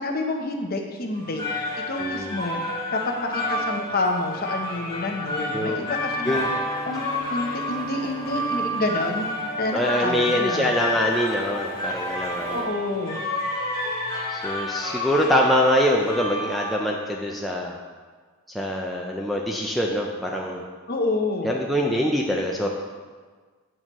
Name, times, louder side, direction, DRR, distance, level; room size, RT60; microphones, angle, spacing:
voice 1, 0.0-1.4 1.9-2.6 2.9-6.4 6.9-9.3 9.6-10.8 12.5-13.2 20.9-21.5, left 2 dB, 40° left, 2 dB, 0.7 m, -28 dB
sound 1, 1.2-17.0, left 1 dB, 20° left, 1.2 m, -30 dB
voice 2, 2.0-2.4 5.5-5.9 6.3-6.5 9.7-12.7 14.3-17.8 18.5-20.6 21.4-22.7, equal, ahead, -2 dB, 0.4 m, -24 dB
sound 2, 5.6-9.7, equal, 50° right, 1.8 m, -41 dB
sound 3, 6.2-12.6, right 1 dB, 25° right, 1.2 m, -43 dB
8.9 x 6.4 x 3.0 m, 1.5 s
head